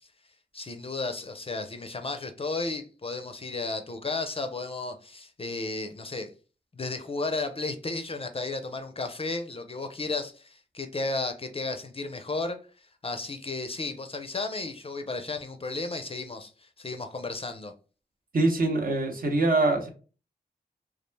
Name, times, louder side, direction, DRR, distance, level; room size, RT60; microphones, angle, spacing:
voice 1, 0.5-6.3 6.7-17.7, left 3 dB, 35° left, 0.5 m, -33 dB
voice 2, 18.3-19.9, right 2 dB, 55° right, 0.8 m, -24 dB
2.3 x 2.1 x 3.1 m
cardioid pair, 45°, 18 cm